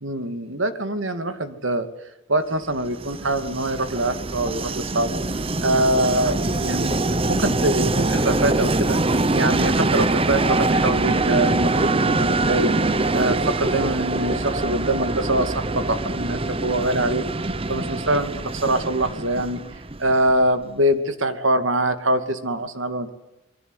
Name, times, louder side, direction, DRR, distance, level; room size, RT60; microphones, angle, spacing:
voice 1, 0.0-1.9 2.3-6.9 7.2-12.8 13.1-17.3 17.7-23.1, right 1 dB, 75° right, 9 dB, 2.6 m, -24 dB
Train, 2.7-20.5, right 2 dB, 30° right, 0.9 m, -23 dB
27.5 x 23.0 x 8.2 m, 0.93 s
head